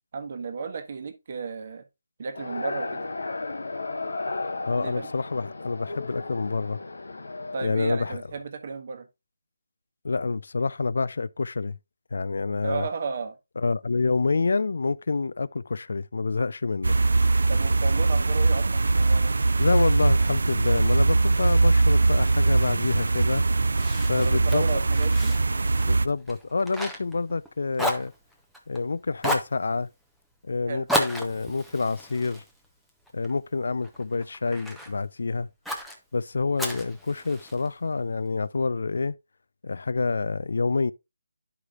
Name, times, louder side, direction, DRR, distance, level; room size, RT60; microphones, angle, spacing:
voice 1, 0.1-1.8 2.2-3.1 4.8-5.1 7.5-9.1 12.6-13.4 17.5-19.3 24.1-25.4 30.7-30.9, right 5 dB, 35° right, 1.0 m, -33 dB
sound 1, 2.3-7.7, left 3 dB, 90° left, 0.9 m, -34 dB
voice 2, 4.7-6.8 7.6-8.2 10.0-11.8 12.1-12.9 13.6-17.0 19.6-23.4 24.1-24.7 25.9-28.1 28.7-29.9 30.4-32.4 33.1-35.5 36.1-39.2 39.6-40.9, left 4 dB, 65° left, 0.4 m, -27 dB
sound 2, 16.8-26.1, right 3 dB, 80° right, 0.4 m, -21 dB
Fire, 23.8-27.5 27.7-28.8 29.2-29.6 30.9-33.3 33.8-34.9 35.7-36.0 36.6-37.7, equal, ahead, 0.6 m, -32 dB
11.5 x 4.8 x 2.4 m
hypercardioid pair, 175°, 0 cm